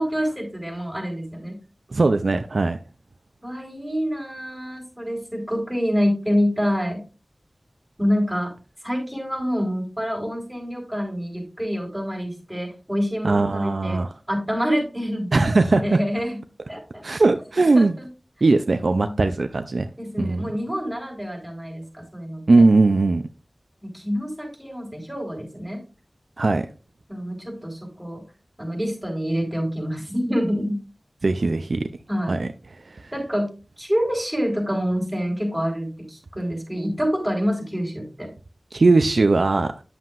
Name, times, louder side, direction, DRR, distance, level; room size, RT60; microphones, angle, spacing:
voice 1, 0.0-1.6 3.4-7.0 8.0-8.5 8.8-14.0 14.3-15.5 15.7-16.4 16.7-17.0 17.7-18.1 18.8-19.2 20.0-22.4 23.8-25.8 27.1-28.2 28.6-30.8 32.1-32.4 33.1-33.5 33.8-38.3, equal, 5° right, 4.1 m, -27 dB
voice 2, 1.9-2.8 13.2-14.1 15.3-16.0 17.0-18.0 18.4-19.9 20.2-20.5 22.5-23.2 26.4-26.7 31.2-31.8 32.3-32.5 32.9-33.1 38.7-39.7, right 3 dB, 85° right, 0.4 m, -19 dB
9.5 x 7.4 x 2.5 m
wide cardioid pair, 40°, 0 cm